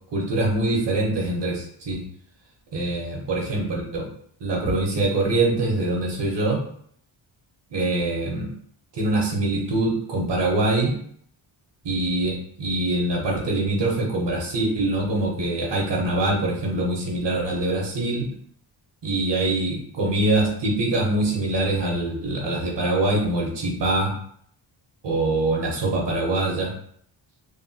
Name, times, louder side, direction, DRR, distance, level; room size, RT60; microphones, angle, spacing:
voice 1, 0.1-2.0 2.7-4.1 4.4-6.6 7.7-8.5 8.9-10.9 11.8-18.3 19.0-24.1 25.0-26.7, right 2 dB, 60° right, -1 dB, 0.9 m, -24 dB
2.9 x 2.2 x 2.7 m, 0.64 s
wide cardioid pair, 155°, 48 cm